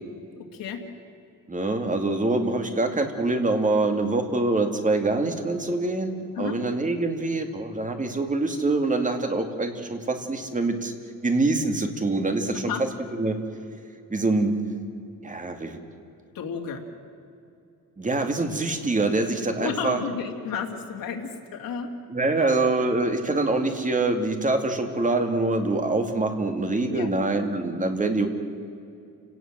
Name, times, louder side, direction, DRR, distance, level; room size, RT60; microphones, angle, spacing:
voice 1, 0.4-0.8 6.3-6.6 12.5-12.8 16.3-16.8 19.6-21.9 26.9-27.2, left 7 dB, 80° left, 2 dB, 2.6 m, -32 dB
voice 2, 1.5-10.9 11.2-12.7 13.2-13.4 14.1-14.5 15.2-15.8 18.0-20.0 22.1-28.3, right 2 dB, 25° right, 5 dB, 2.5 m, -25 dB
30.0 x 18.5 x 7.5 m, 2.5 s
cardioid pair, 135°, 34 cm